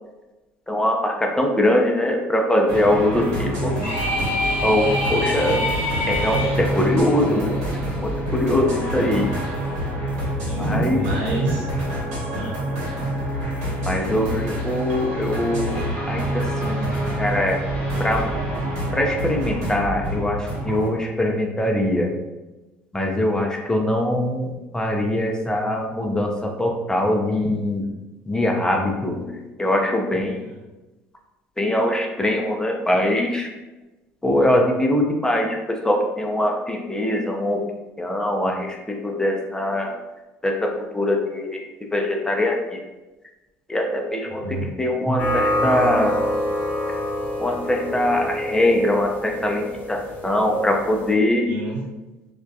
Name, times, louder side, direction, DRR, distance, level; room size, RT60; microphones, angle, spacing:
voice 1, 0.7-3.7 4.6-5.6 6.1-7.6 8.0-9.3 10.6-11.0 13.9-15.8 16.1-16.9 17.2-17.6 18.0-18.3 18.9-22.1 22.9-27.9 28.3-30.4 31.6-33.5 34.2-37.6 38.0-39.9 40.4-41.6 41.9-42.8 43.7-44.4 44.8-46.2 47.4-51.5, left 1 dB, 10° left, 1 dB, 0.4 m, -22 dB
sound 1, 2.7-20.9, right 1 dB, 70° right, 1.1 m, -27 dB
voice 2, 3.3-3.7 10.4-11.7 12.3-12.6 30.4-30.6 44.2-44.7 51.4-51.8, right 1 dB, 90° right, -4 dB, 0.8 m, -28 dB
sound 2, 3.8-6.6, left 1 dB, 85° left, 0.8 m, -25 dB
sound 3, 45.2-51.1, left 1 dB, 25° left, 0.8 m, -26 dB
2.3 x 2.1 x 2.6 m, 1.1 s
supercardioid pair, 75°, 6 cm